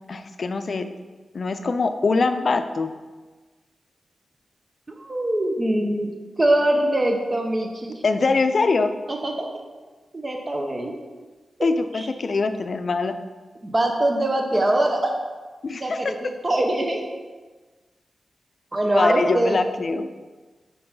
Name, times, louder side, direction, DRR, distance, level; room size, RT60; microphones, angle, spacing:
voice 1, 0.1-0.9 1.3-2.9 8.0-8.9 11.6-13.1 15.6-16.1 18.8-20.1, left 3 dB, 55° left, 9 dB, 0.4 m, -23 dB
voice 2, 5.0-6.1 6.4-8.0 9.1-9.5 10.1-10.9 11.9-12.1 13.6-15.1 15.8-17.0 18.7-19.6, right 1 dB, 30° right, 2 dB, 0.8 m, -23 dB
5.4 x 4.6 x 5.5 m, 1.3 s
cardioid pair, 80°, 0 cm